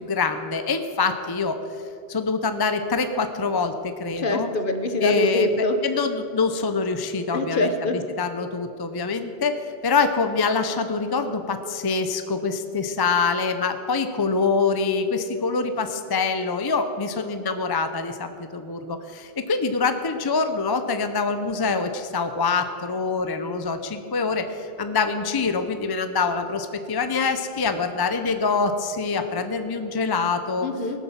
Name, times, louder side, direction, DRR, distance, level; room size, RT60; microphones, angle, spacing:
voice 1, 0.1-1.5 2.1-3.7 4.0-4.5 5.0-7.7 8.2-9.5 9.8-11.4 11.8-18.1 18.7-18.8 19.5-23.8 24.1-24.4 24.8-30.7, left 4 dB, 25° left, 8 dB, 0.6 m, -24 dB
voice 2, 4.2-5.8 7.3-8.0 30.6-31.0, left 2 dB, 55° left, 7 dB, 1.1 m, -24 dB
18.5 x 7.2 x 7.2 m, 2.7 s
omnidirectional pair, 1.1 m